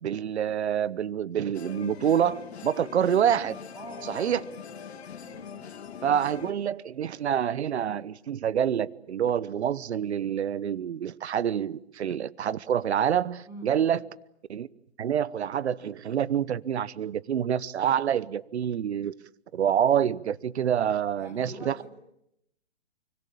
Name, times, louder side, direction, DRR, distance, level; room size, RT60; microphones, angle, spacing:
voice 1, 0.0-3.6 4.1-4.4 6.0-14.0 14.5-14.7 15.0-19.2 19.5-21.8, right 9 dB, 70° right, 20 dB, 1.0 m, -27 dB
sound 1, 1.5-6.5, left 7 dB, 65° left, 2.5 m, -42 dB
voice 2, 3.7-4.4 13.4-13.9 21.2-21.9, equal, 5° right, 2 dB, 7.6 m, -43 dB
25.0 x 24.5 x 8.6 m, 0.80 s
hypercardioid pair, 140°, 34 cm